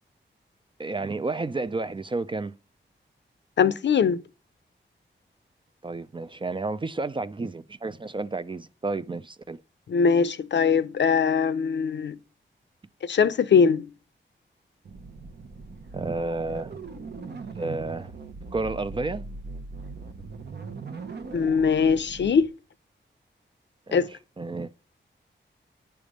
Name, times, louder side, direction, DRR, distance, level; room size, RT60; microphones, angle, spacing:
voice 1, 0.8-2.5 5.8-9.6 15.9-16.8 17.4-18.1 18.5-19.3 23.9-24.1 24.4-24.7, right 3 dB, 25° right, 0.4 m, -31 dB
voice 2, 3.6-4.2 9.9-12.2 13.0-13.9 21.3-22.4 23.9-24.1, left 6 dB, 65° left, 0.5 m, -21 dB
sound 1, 14.8-22.5, right 4 dB, 60° right, 0.9 m, -40 dB
9.7 x 3.5 x 6.4 m
wide cardioid pair, 105°, 20 cm